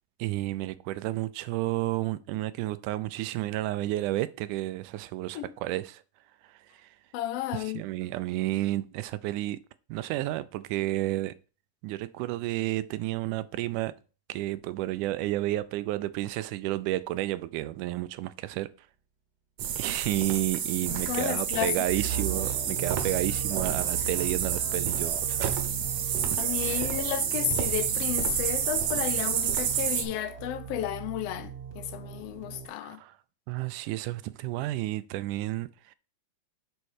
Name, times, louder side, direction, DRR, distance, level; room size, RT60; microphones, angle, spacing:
voice 1, 0.2-6.0 6.5-6.9 7.5-9.6 9.9-11.3 11.8-13.9 14.3-18.7 19.8-25.6 26.3-26.9 32.8-33.2 33.5-36.0, right 16 dB, 90° right, 2.1 m, -31 dB
voice 2, 7.1-7.8 20.9-21.7 26.4-33.0, left 12 dB, 75° left, 1.5 m, -32 dB
sound 1, 19.6-30.0, right 8 dB, 65° right, 1.8 m, -29 dB
sound 2, 21.9-32.7, right 7 dB, 35° right, 1.2 m, -38 dB
7.0 x 4.4 x 6.4 m
omnidirectional pair, 3.5 m